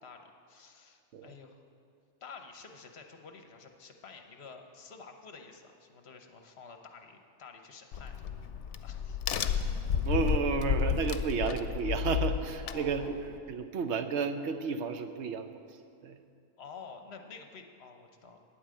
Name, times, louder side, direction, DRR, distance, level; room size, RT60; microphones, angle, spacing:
voice 1, 0.0-1.6 2.2-8.4 8.8-9.2 12.6-13.1 16.6-18.4, left 5 dB, 65° left, 5 dB, 1.1 m, -50 dB
Crack, 7.9-13.4, left 8 dB, 85° left, 0.9 m, -32 dB
voice 2, 9.9-15.6 16.0-16.2, right 5 dB, 75° right, 8 dB, 0.9 m, -32 dB
9.4 x 8.7 x 7.6 m, 2.4 s
omnidirectional pair, 1.2 m